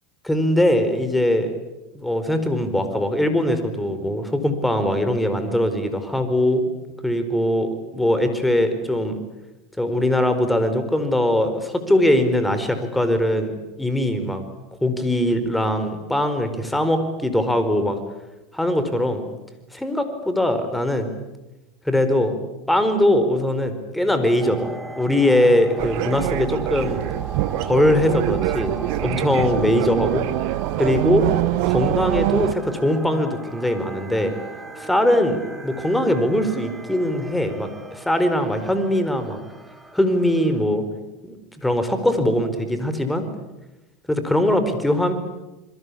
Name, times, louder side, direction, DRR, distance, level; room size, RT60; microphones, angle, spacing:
voice 1, 0.2-1.5 1.9-6.6 7.0-9.2 9.8-14.4 14.8-18.0 18.5-19.3 19.7-21.1 21.8-22.4 22.7-24.7 25.0-27.0 27.6-28.8 29.0-30.2 30.8-31.3 31.6-34.3 34.8-39.4 39.9-40.8 41.2-43.3 44.1-45.1, left 1 dB, 5° left, 9 dB, 4.6 m, -21 dB
sound 1, 24.4-40.6, right 1 dB, 10° right, 4.4 m, -38 dB
sound 2, 25.8-32.5, right 18 dB, 60° right, 1.0 m, -24 dB
27.5 x 22.5 x 8.6 m, 1.0 s
hypercardioid pair, 85°, 0 cm